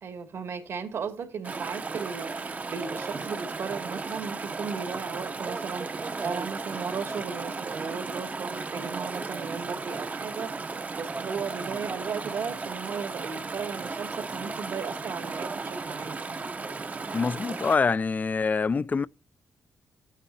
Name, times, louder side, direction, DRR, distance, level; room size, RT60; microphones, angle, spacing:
voice 1, 0.0-10.5 11.0-16.3, right 6 dB, 70° right, 2.4 m, -36 dB
Chatter / Stream, 1.4-17.8, right 4 dB, 35° right, 0.8 m, -35 dB
voice 2, 17.1-19.1, left 5 dB, 35° left, 0.4 m, -25 dB
14.0 x 9.1 x 2.8 m
cardioid pair, 95°, 5 cm